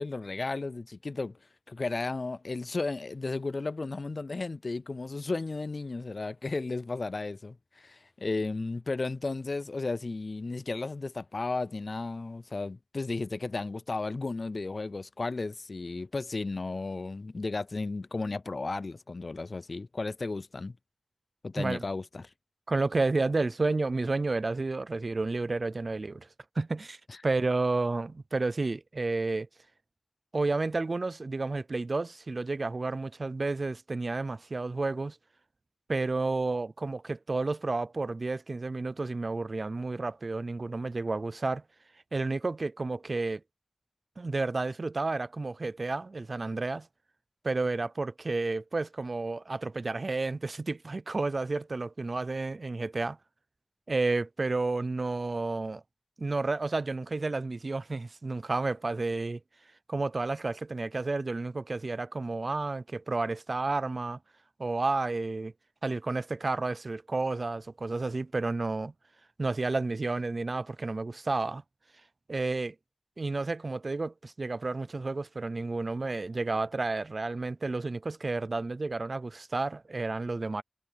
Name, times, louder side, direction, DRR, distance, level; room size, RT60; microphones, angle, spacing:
voice 1, 0.0-1.4 1.7-20.7 21.4-22.3 27.1-27.2, left 3 dB, 80° left, 0.3 m, -34 dB
voice 2, 22.7-26.3 26.6-27.0 27.2-29.5 30.3-35.2 35.9-41.6 42.1-43.4 44.2-46.9 47.4-53.2 53.9-55.8 56.2-59.4 59.9-64.2 64.6-65.5 65.8-68.9 69.4-71.6 72.3-72.7 73.2-80.6, right 3 dB, 75° right, 0.5 m, -31 dB
wide cardioid pair, 50°, 0 cm